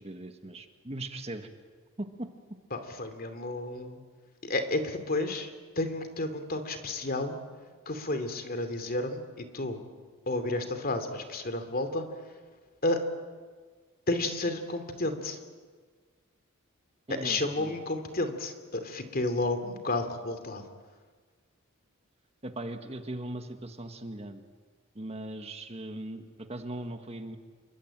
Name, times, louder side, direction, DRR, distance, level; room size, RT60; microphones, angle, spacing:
voice 1, 0.0-1.5 2.0-2.3 17.1-17.8 22.4-24.4 24.9-27.4, right 1 dB, 30° right, 6 dB, 1.6 m, -39 dB
voice 2, 2.7-4.0 4.4-5.5 5.8-7.4 7.9-9.8 10.3-12.1 12.8-13.0 14.1-15.4 17.1-20.6, left 2 dB, 45° left, 8 dB, 2.8 m, -31 dB
28.5 x 23.0 x 8.9 m, 1.5 s
head